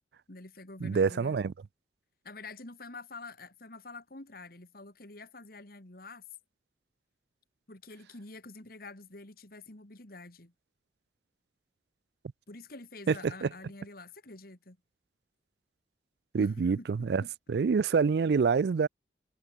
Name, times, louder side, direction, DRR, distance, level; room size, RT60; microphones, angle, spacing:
voice 1, 0.3-1.3 2.2-6.2 7.7-10.5 12.5-14.8 16.4-17.3, left 3 dB, 55° left, 2.4 m, -47 dB
voice 2, 0.8-1.5 13.1-13.5 16.3-17.2 17.5-18.9, right 5 dB, 60° right, 0.4 m, -26 dB
head